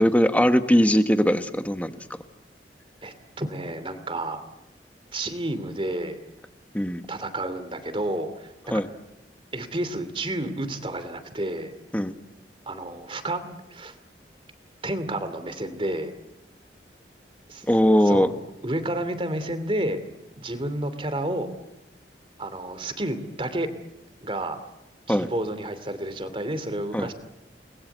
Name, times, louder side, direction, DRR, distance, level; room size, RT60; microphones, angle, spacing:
voice 1, 0.0-1.9 6.7-7.0 8.7-8.9 11.9-12.1 17.7-18.3 25.1-25.3 26.9-27.1, equal, 10° left, 9 dB, 1.2 m, -20 dB
voice 2, 3.0-4.4 5.1-6.2 7.1-8.7 9.5-11.7 12.7-13.9 14.8-16.2 17.5-17.6 18.0-18.3 18.6-20.0 20.4-21.5 22.4-23.7 24.2-24.6 25.1-27.1, right 1 dB, 30° right, 11 dB, 2.7 m, -30 dB
29.5 x 21.0 x 8.1 m, 0.95 s
head